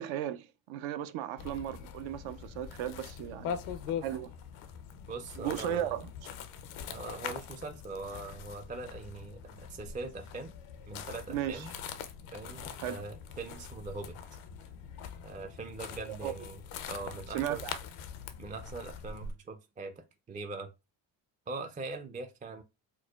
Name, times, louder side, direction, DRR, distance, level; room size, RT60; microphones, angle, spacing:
voice 1, 0.0-3.6 4.0-4.3 5.4-6.1 11.3-11.7 12.8-13.0 16.1-16.3 17.3-17.7, right 11 dB, 70° right, 0.5 m, -35 dB
sound 1, 1.4-19.3, left 7 dB, 80° left, 0.6 m, -43 dB
voice 2, 5.1-5.9 6.9-10.5 10.9-11.7 12.3-14.2 15.2-16.6 16.9-17.6 18.4-20.7 21.5-22.6, right 3 dB, 20° right, 0.4 m, -42 dB
4.6 x 2.1 x 2.3 m
supercardioid pair, 65°, 50 cm